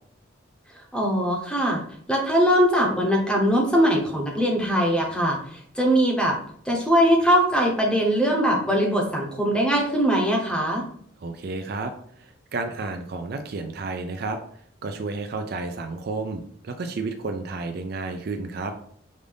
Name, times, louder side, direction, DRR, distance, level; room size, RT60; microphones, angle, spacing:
voice 1, 0.9-1.8 2.1-6.4 6.6-10.8, equal, 5° left, -1 dB, 0.8 m, -21 dB
voice 2, 11.2-14.4 14.8-18.7, right 3 dB, 50° right, 6 dB, 0.4 m, -31 dB
5.2 x 2.5 x 3.3 m, 0.62 s
head